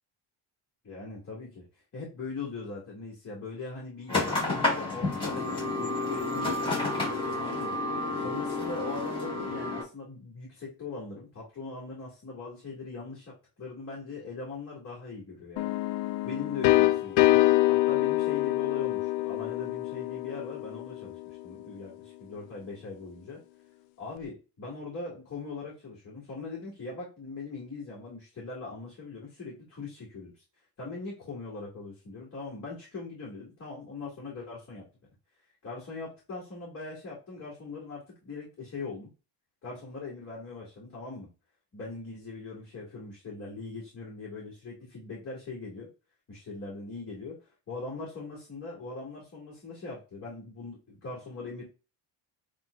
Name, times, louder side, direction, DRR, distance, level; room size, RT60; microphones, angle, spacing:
voice 1, 0.8-7.8 8.2-15.7 16.2-21.9 22.2-23.4 24.0-30.3 30.8-34.8 35.6-39.1 39.6-41.3 41.7-45.9 46.3-47.4 47.7-51.6, left 3 dB, 30° left, -6 dB, 2.0 m, -41 dB
sound 1, 4.1-9.8, left 2 dB, 10° left, 2.5 m, -30 dB
sound 2, 15.6-21.2, left 17 dB, 75° left, 0.5 m, -25 dB
7.5 x 2.7 x 2.3 m, 0.31 s
cardioid pair, 155°, 46 cm